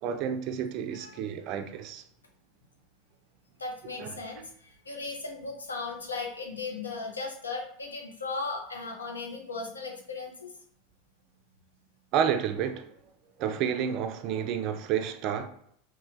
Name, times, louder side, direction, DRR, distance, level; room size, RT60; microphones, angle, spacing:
voice 1, 0.0-2.0 3.8-4.2 12.1-13.0 13.4-15.5, right 8 dB, 50° right, 0.3 m, -30 dB
voice 2, 3.6-10.4, left 3 dB, 90° left, 0.5 m, -37 dB
3.0 x 2.1 x 2.5 m
hypercardioid pair, 85°, 0 cm